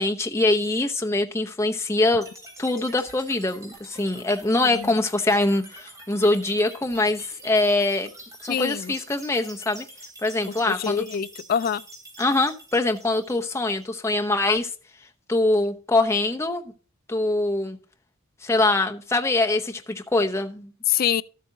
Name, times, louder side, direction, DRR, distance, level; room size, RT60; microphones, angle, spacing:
voice 1, 0.0-2.3 2.6-8.1 8.4-9.9 10.2-11.0 12.2-14.7 15.3-16.7 17.1-17.8 18.4-20.7, left 2 dB, 15° left, 0.8 m, -23 dB
sound 1, 2.2-14.2, right 1 dB, 15° right, 3.6 m, -46 dB
voice 2, 8.5-8.9 10.7-11.8 20.9-21.2, left 8 dB, 45° left, 0.3 m, -25 dB
12.5 x 8.4 x 2.7 m
head